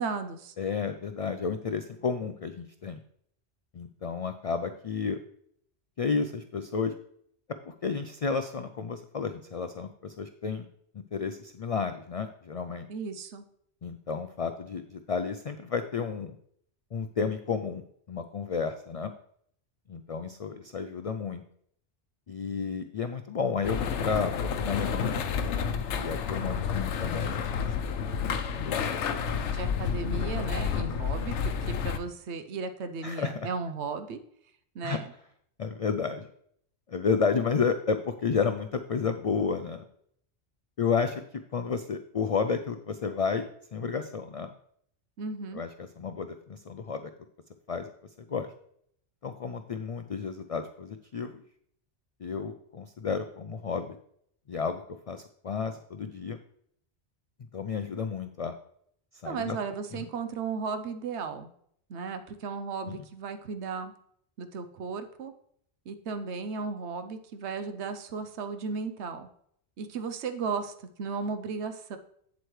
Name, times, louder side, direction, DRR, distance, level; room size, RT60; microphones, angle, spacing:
voice 1, 0.0-0.5 12.9-13.5 29.5-34.2 34.7-35.1 45.2-45.6 59.2-61.5 61.9-63.9 64.4-65.3 65.9-69.3 69.8-70.7 71.0-72.0, right 5 dB, 80° right, 8 dB, 1.0 m, -35 dB
voice 2, 0.6-3.0 3.7-5.2 6.0-6.9 7.7-10.7 11.1-12.9 13.8-16.4 16.9-19.1 19.9-21.4 22.3-25.2 26.0-29.5 30.9-31.0 33.0-33.5 34.8-35.0 35.6-36.3 36.9-39.8 40.8-41.2 41.5-43.5 43.7-44.5 45.5-47.1 47.7-47.9 48.3-48.5 49.2-51.4 52.2-54.0 54.5-56.4 57.5-58.5 59.2-59.6 59.9-60.0 62.8-63.0, left 5 dB, 60° left, 8 dB, 0.3 m, -32 dB
sound 1, 23.6-32.0, left 6 dB, 90° left, 1.0 m, -30 dB
8.3 x 7.8 x 3.2 m, 0.67 s
omnidirectional pair, 1.1 m